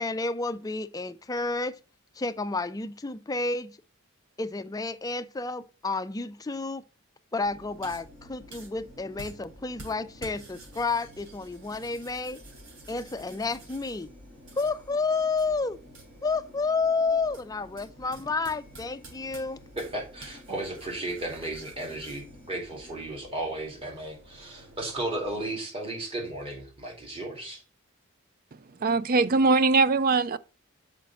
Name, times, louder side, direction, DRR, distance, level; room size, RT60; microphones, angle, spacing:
voice 1, 0.0-1.8 2.2-3.8 4.4-6.8 7.3-12.4 12.9-14.1 14.6-15.8 16.2-19.6, left 3 dB, 15° left, 0.4 m, -30 dB
sound 1, 7.4-25.6, right 1 dB, 60° right, 3.7 m, -49 dB
voice 2, 19.8-27.6, right 2 dB, 25° right, 2.8 m, -35 dB
voice 3, 28.8-30.4, right 3 dB, 40° right, 0.4 m, -21 dB
6.2 x 5.1 x 5.8 m
head